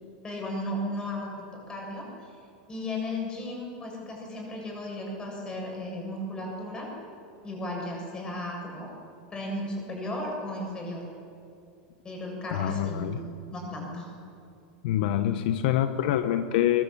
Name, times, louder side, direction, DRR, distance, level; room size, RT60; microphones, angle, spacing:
voice 1, 0.2-2.4 2.7-6.9 7.4-8.9 9.3-11.1 12.0-13.2 13.5-14.1, left 1 dB, 15° left, -1 dB, 7.5 m, -35 dB
voice 2, 12.5-13.2 14.8-16.8, left 11 dB, 65° left, 9 dB, 1.1 m, -25 dB
21.5 x 21.5 x 8.8 m, 2.5 s
supercardioid pair, 150°, 5 cm